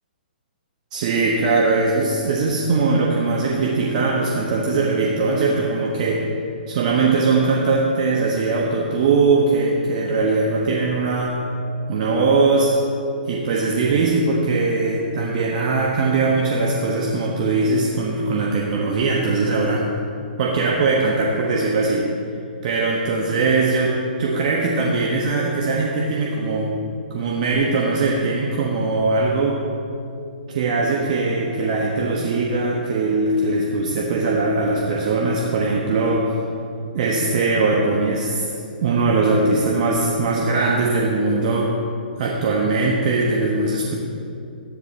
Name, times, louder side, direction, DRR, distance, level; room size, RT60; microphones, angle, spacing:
voice 1, 0.9-6.2 6.7-11.3 11.9-12.7 13.3-19.9 20.4-22.1 22.6-26.7 27.1-29.6 30.5-36.3 36.9-38.5 38.8-41.7 42.2-43.9, right 3 dB, 50° right, -1 dB, 1.3 m, -20 dB
13.0 x 10.0 x 4.2 m, 2.5 s
hypercardioid pair, 130°, 5 cm